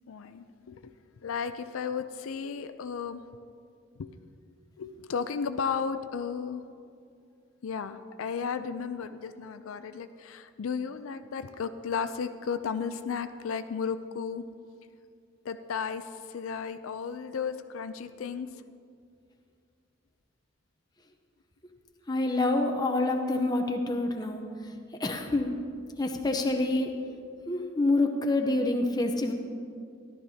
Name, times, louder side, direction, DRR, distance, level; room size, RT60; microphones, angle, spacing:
voice 1, 0.1-0.9 1.2-3.2 4.0-4.1 4.8-6.6 7.6-14.4 15.4-18.5, left 6 dB, 80° left, 10 dB, 0.4 m, -34 dB
voice 2, 22.1-24.4 25.0-25.5 26.0-26.9 27.5-29.3, left 2 dB, 20° left, 3 dB, 0.7 m, -27 dB
14.0 x 12.0 x 2.8 m, 2.4 s
head